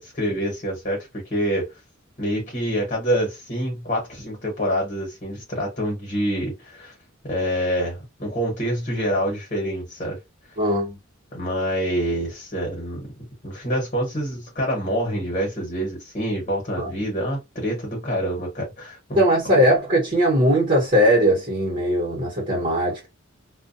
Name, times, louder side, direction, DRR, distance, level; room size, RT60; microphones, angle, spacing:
voice 1, 0.0-1.7 2.2-6.9 7.2-10.2 11.3-13.0 13.4-19.2, equal, 35° left, 1.1 m, -26 dB
voice 2, 10.6-11.0 16.8-16.9 19.2-23.1, equal, 40° right, 1.0 m, -19 dB
2.2 x 2.2 x 2.6 m
head